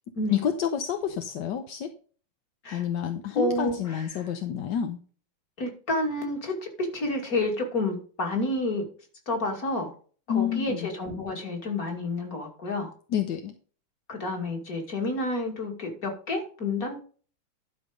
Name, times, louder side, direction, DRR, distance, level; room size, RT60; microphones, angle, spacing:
voice 1, 0.3-1.9 2.7-5.0 10.3-10.9 13.1-13.5, left 8 dB, 65° left, 7 dB, 1.3 m, -29 dB
voice 2, 3.3-4.1 5.6-6.5 6.8-8.9 9.3-9.9 10.3-12.9 14.1-17.0, left 2 dB, 40° left, 2 dB, 3.0 m, -29 dB
12.0 x 5.2 x 5.1 m, 0.40 s
omnidirectional pair, 2.4 m